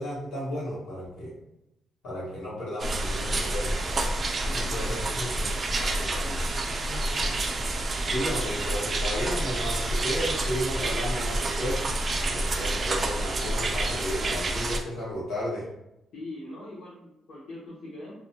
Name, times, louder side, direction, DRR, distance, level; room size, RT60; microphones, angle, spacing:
voice 1, 0.0-1.3 2.0-3.8 4.5-5.6 6.8-7.4 8.0-11.8 12.2-15.7, equal, 90° left, -6 dB, 1.1 m, -33 dB
sound 1, 2.8-14.8, right 2 dB, 35° right, 0.3 m, -28 dB
voice 2, 4.4-5.0 5.4-6.4 16.1-18.1, left 1 dB, 70° left, -8 dB, 0.8 m, -42 dB
2.5 x 2.1 x 2.7 m, 0.87 s
cardioid pair, 110°, 0 cm